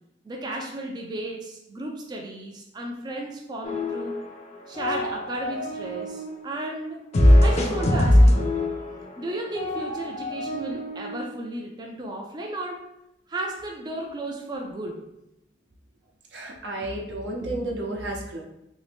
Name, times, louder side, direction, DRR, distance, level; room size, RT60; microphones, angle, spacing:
voice 1, 0.2-4.2 4.7-7.1 7.4-8.7 9.2-12.8 13.3-15.0, right 1 dB, 25° right, 0 dB, 0.3 m, -34 dB
sound 1, 3.6-4.4 4.6-6.3 7.1-11.2, left 1 dB, 40° left, 0.4 m, -22 dB
voice 2, 16.3-18.4, right 1 dB, 75° right, -1 dB, 0.7 m, -32 dB
2.9 x 2.6 x 3.4 m, 0.84 s
head